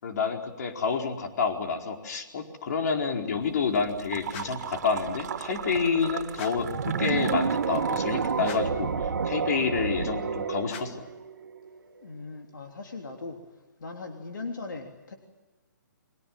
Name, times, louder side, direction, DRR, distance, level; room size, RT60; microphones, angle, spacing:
voice 1, 0.0-11.1, left 5 dB, 55° left, 3 dB, 4.5 m, -29 dB
sound 1, 3.4-8.7, right 8 dB, 55° right, 2.6 m, -39 dB
sound 2, 4.3-4.8 6.3-6.8 8.4-8.9 10.6-11.1, left 7 dB, 40° left, 2.5 m, -43 dB
sound 3, 6.5-11.8, right 6 dB, 70° right, 2.0 m, -29 dB
voice 2, 12.0-13.4 13.8-15.1, left 3 dB, 75° left, 3 dB, 3.4 m, -39 dB
29.5 x 24.5 x 7.6 m, 1.2 s
hypercardioid pair, 135°, 11 cm